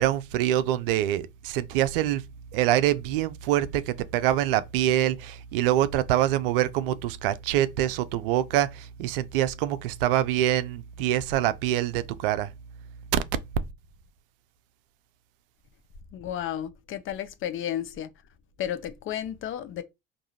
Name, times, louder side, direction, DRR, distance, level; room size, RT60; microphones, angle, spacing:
voice 1, 0.0-2.2 2.5-12.5 13.1-13.2, right 12 dB, 65° right, 0.5 m, -25 dB
voice 2, 16.1-18.1 18.6-19.8, left 10 dB, 45° left, 0.6 m, -32 dB
4.8 x 2.6 x 2.8 m
figure-of-eight pair, 55°, 30 cm